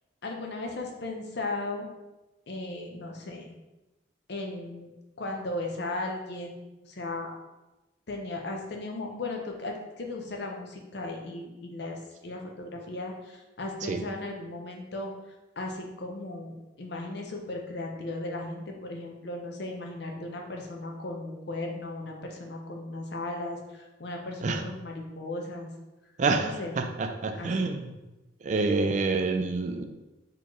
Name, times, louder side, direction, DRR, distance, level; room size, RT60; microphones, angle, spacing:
voice 1, 0.2-1.9 2.5-3.5 4.3-4.9 5.2-6.6 6.8-7.3 8.1-15.1 15.6-25.7 26.4-26.7 27.4-27.8, left 2 dB, 60° left, 1 dB, 0.6 m, -36 dB
voice 2, 26.2-28.0 28.4-29.8, right 3 dB, 40° right, 5 dB, 0.3 m, -27 dB
4.2 x 3.0 x 3.0 m, 1.0 s
head